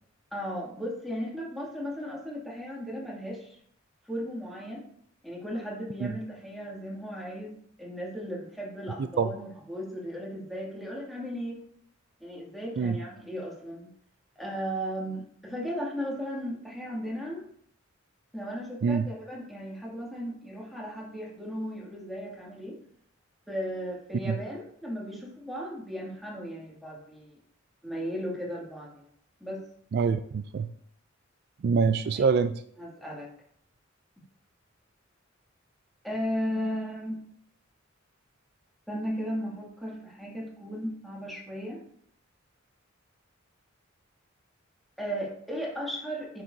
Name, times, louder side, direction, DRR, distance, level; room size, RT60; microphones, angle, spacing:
voice 1, 0.3-3.6 4.0-4.8 5.2-11.6 12.2-13.9 14.4-17.4 18.3-22.8 23.5-27.4 27.8-29.1 29.4-29.6 32.1-32.2 32.8-33.3 36.0-37.2 38.9-41.8 45.0-46.4, equal, ahead, -4 dB, 2.3 m, -36 dB
voice 2, 29.9-30.7 31.6-32.5, right 5 dB, 55° right, 11 dB, 0.3 m, -25 dB
9.5 x 6.8 x 2.7 m, 0.65 s
head